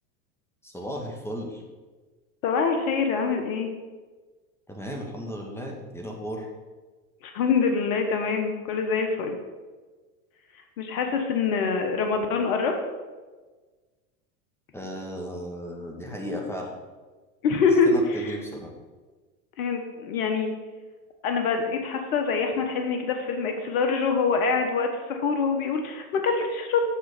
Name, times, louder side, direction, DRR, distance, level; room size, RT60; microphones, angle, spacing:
voice 1, 0.6-1.6 4.7-6.5 14.7-16.7 17.9-18.7, equal, 5° left, 1 dB, 1.8 m, -35 dB
voice 2, 2.4-3.7 7.2-9.4 10.8-12.7 17.4-18.3 19.6-20.5 21.2-26.8, left 5 dB, 75° left, 4 dB, 1.3 m, -25 dB
7.2 x 7.1 x 5.1 m, 1.3 s
hypercardioid pair, 100°, 44 cm